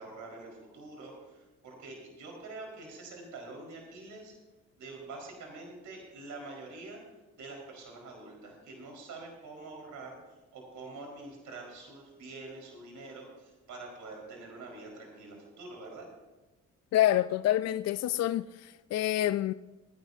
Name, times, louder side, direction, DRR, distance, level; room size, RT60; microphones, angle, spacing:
voice 1, 0.0-4.3 4.8-7.0 7.4-16.1, right 3 dB, 65° right, 4.6 m, -46 dB
voice 2, 16.9-19.5, left 13 dB, 55° left, 0.5 m, -27 dB
25.0 x 10.5 x 2.7 m
hypercardioid pair, 50°, 32 cm